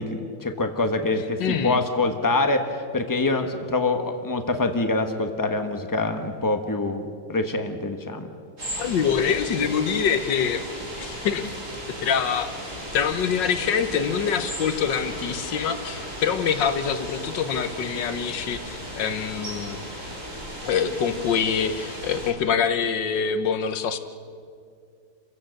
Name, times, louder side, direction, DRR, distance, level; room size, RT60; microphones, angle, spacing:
voice 1, 0.0-8.3, left 2 dB, 15° left, 6 dB, 1.0 m, -25 dB
voice 2, 1.4-1.8 8.8-10.6 11.0-11.5 12.0-12.5 12.9-19.8 20.6-24.0, left 7 dB, 65° left, 10 dB, 1.6 m, -25 dB
sound 1, 8.6-22.3, equal, 45° right, 5.7 m, -36 dB
29.0 x 16.0 x 6.6 m, 2.3 s
omnidirectional pair, 2.2 m